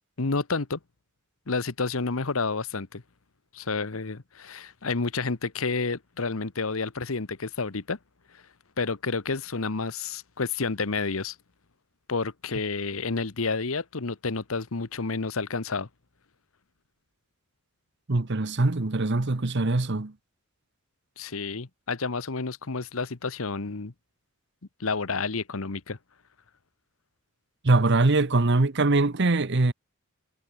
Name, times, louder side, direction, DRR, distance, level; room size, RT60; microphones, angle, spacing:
voice 1, 0.2-0.8 1.5-3.0 3.5-8.0 8.3-8.4 8.8-11.3 12.1-15.9 21.2-23.9 24.8-26.0, left 4 dB, 75° left, 1.1 m, -30 dB
voice 2, 18.1-20.1 27.6-29.7, right 2 dB, 55° right, 1.0 m, -22 dB
head